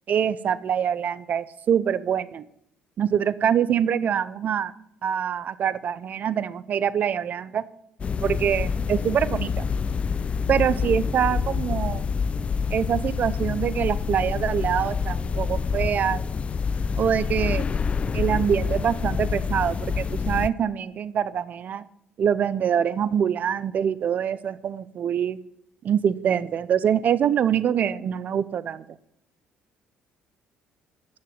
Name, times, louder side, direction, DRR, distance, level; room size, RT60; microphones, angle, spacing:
voice 1, 0.1-2.4 3.0-4.7 5.0-7.6 8.2-9.6 10.5-12.1 12.7-16.2 17.0-17.7 18.1-21.8 22.2-25.4 25.8-28.8, right 8 dB, 55° right, 17 dB, 0.6 m, -24 dB
sound 1, 8.0-20.5, left 5 dB, 35° left, 0.4 m, -27 dB
9.6 x 6.9 x 7.9 m, 0.74 s
supercardioid pair, 70°, 3 cm